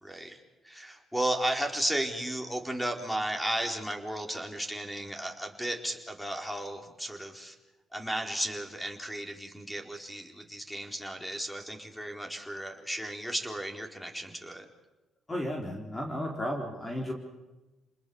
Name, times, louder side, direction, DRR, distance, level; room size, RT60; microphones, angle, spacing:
voice 1, 0.0-7.6 7.9-14.7, right 1 dB, ahead, 4 dB, 4.3 m, -34 dB
voice 2, 15.3-17.1, equal, 20° left, 1 dB, 4.5 m, -33 dB
28.0 x 21.0 x 7.1 m, 1.1 s
cardioid pair, 90°, 0 cm